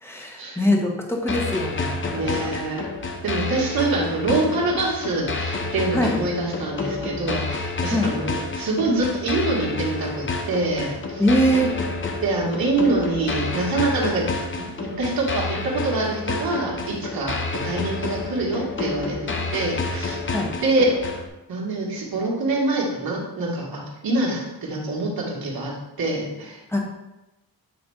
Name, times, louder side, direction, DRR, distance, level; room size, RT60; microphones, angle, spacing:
voice 1, 0.0-2.5 5.9-6.1 7.9-8.1 11.2-11.7 20.3-20.5 26.7-26.8, equal, 5° left, -1 dB, 1.1 m, -22 dB
sound 1, 1.3-21.3, left 3 dB, 30° left, 0.7 m, -29 dB
voice 2, 2.1-2.9 3.2-11.2 12.2-20.2 20.6-21.0 21.5-25.7 26.0-26.8, right 2 dB, 65° right, -3 dB, 2.2 m, -25 dB
9.0 x 3.4 x 5.0 m, 0.96 s
wide cardioid pair, 165°, 39 cm